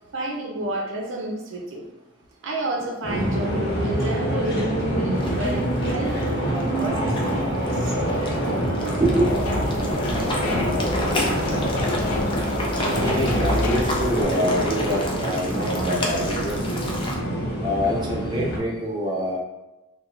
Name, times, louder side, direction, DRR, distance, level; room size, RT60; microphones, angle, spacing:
voice 1, 0.1-1.9 2.4-7.5 7.8-8.0, right 1 dB, 60° right, 0 dB, 0.5 m, -30 dB
sound 1, 3.0-18.6, equal, 50° left, 0.8 m, -26 dB
sound 2, 5.1-17.1, left 1 dB, 25° left, 0.4 m, -32 dB
sound 3, 9.2-14.2, left 1 dB, 75° left, 0.5 m, -28 dB
voice 2, 12.7-16.8 17.6-19.4, equal, 20° right, -4 dB, 0.7 m, -25 dB
3.5 x 2.2 x 3.1 m, 0.97 s
head